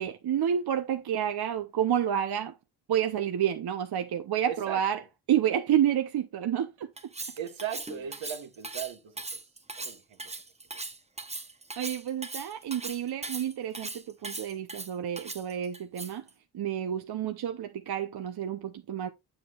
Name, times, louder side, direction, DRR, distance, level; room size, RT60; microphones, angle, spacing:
voice 1, 0.0-2.5 2.9-5.0 5.3-6.9 11.8-16.2 16.5-19.1, right 10 dB, 50° right, 0.7 m, -29 dB
voice 2, 4.4-5.0 7.4-9.2 9.8-10.3, right 9 dB, 65° right, 1.3 m, -38 dB
Cutlery silverware, 7.0-16.3, right 3 dB, 15° right, 0.8 m, -39 dB
7.7 x 7.2 x 2.4 m
supercardioid pair, 45°, 50 cm